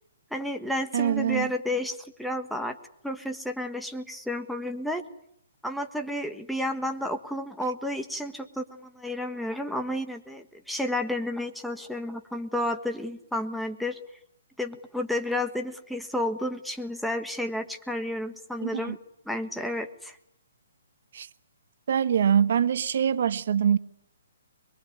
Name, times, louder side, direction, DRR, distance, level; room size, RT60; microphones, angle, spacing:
voice 1, 0.3-2.8 3.0-5.0 5.6-14.0 14.6-19.0 19.2-20.2, left 1 dB, ahead, 1.5 m, -31 dB
voice 2, 0.9-1.5 18.6-19.0 21.1-21.3 21.9-23.8, right 8 dB, 55° right, 1.3 m, -24 dB
23.5 x 22.5 x 9.5 m
hypercardioid pair, 160°, 0 cm